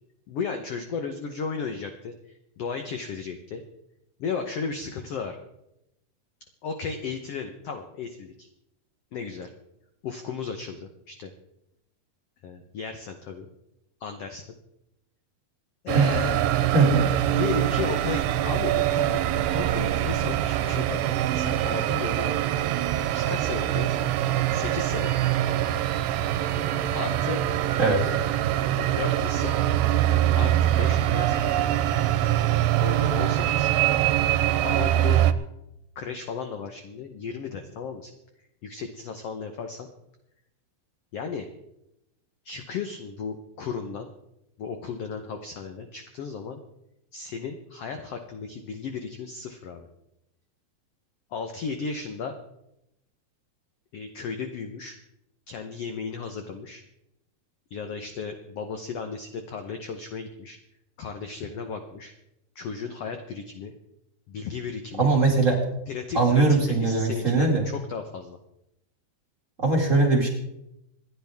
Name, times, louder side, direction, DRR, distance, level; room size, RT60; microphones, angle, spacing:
voice 1, 0.3-3.6 4.2-5.4 6.6-8.5 9.1-9.5 10.0-11.3 12.4-13.5 14.0-14.4 15.8-16.6 17.4-22.3 23.1-24.0 24.5-25.1 26.9-27.4 28.8-29.6 30.3-31.6 32.8-33.7 34.6-35.2 35.9-38.1 38.6-39.9 41.1-41.5 42.4-44.1 44.6-46.6 47.1-49.9 51.3-52.3 53.9-55.0 55.5-56.8 57.7-60.6 61.0-62.1 62.5-63.7 64.3-65.1 65.9-68.4, left 5 dB, 75° left, 6 dB, 1.4 m, -34 dB
sound 1, 15.9-35.3, right 12 dB, 80° right, 2.4 m, -24 dB
voice 2, 16.7-17.1 27.8-28.0 65.0-65.6 66.1-67.6 69.6-70.3, right 3 dB, 25° right, -1 dB, 2.0 m, -20 dB
27.0 x 10.0 x 3.5 m, 0.84 s
omnidirectional pair, 4.2 m